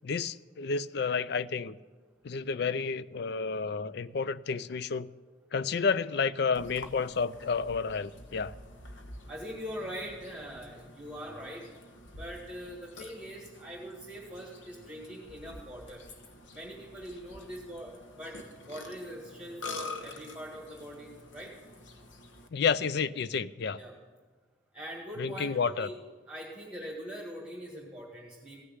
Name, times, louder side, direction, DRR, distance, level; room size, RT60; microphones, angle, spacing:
voice 1, 0.0-1.8 2.2-5.1 5.5-8.5 22.5-23.8 25.2-25.9, left 5 dB, 55° left, 16 dB, 0.4 m, -30 dB
Burping eructation, 6.5-22.5, left 2 dB, 75° left, 1.2 m, -47 dB
voice 2, 9.3-11.6 12.2-16.0 16.5-18.4 18.7-21.5 23.7-23.9 24.7-25.9 26.3-28.6, equal, 5° right, -3 dB, 1.9 m, -42 dB
16.0 x 6.6 x 9.5 m, 1.4 s
head